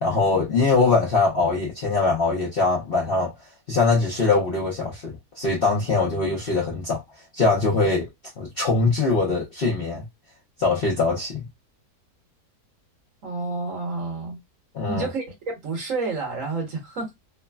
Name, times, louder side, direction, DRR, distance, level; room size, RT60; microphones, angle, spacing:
voice 1, 0.0-3.3 3.7-7.0 7.3-8.1 8.4-10.0 10.6-11.4 14.7-15.1, left 3 dB, 50° left, 0.7 m, -22 dB
voice 2, 13.2-14.4 14.8-17.1, right 3 dB, 55° right, 1.3 m, -29 dB
3.2 x 2.0 x 2.2 m
omnidirectional pair, 1.8 m